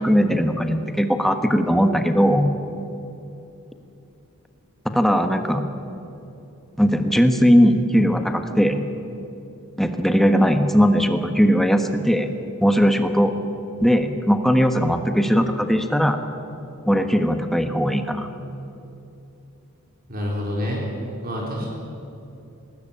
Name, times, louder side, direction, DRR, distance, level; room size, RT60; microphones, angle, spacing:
voice 1, 0.0-2.5 4.9-5.6 6.8-8.8 9.8-12.3 12.6-13.3 13.8-16.2 16.8-18.3, equal, ahead, 6 dB, 1.3 m, -19 dB
voice 2, 20.1-20.9 21.2-21.7, equal, 40° right, -3 dB, 4.2 m, -27 dB
20.0 x 19.0 x 8.8 m, 2.9 s
head